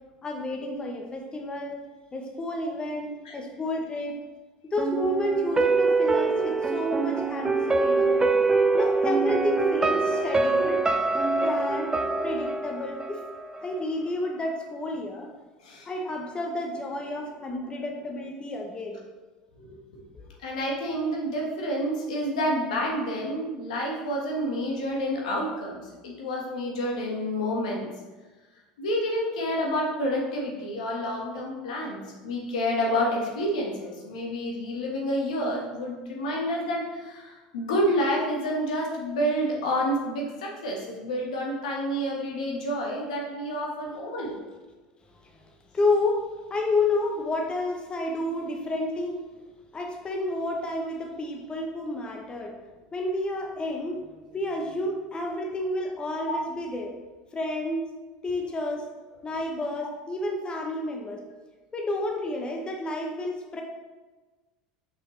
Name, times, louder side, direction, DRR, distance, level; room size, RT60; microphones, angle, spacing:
voice 1, 0.2-1.8 2.1-4.2 4.7-8.3 8.7-10.8 11.4-11.9 12.2-13.2 13.6-15.3 15.9-19.0 20.1-20.2 45.2-45.3 45.7-49.2 49.7-52.6 52.9-56.9 57.3-57.9 58.2-61.2 61.7-63.6, left 2 dB, 25° left, 2 dB, 0.9 m, -30 dB
sound 1, 4.8-13.8 14.1-14.2, right 3 dB, 20° right, 0.4 m, -24 dB
voice 2, 20.4-27.9 28.8-44.4 56.3-56.4, equal, 80° left, -2 dB, 1.4 m, -29 dB
5.9 x 5.0 x 3.2 m, 1.3 s
hypercardioid pair, 80°, 4 cm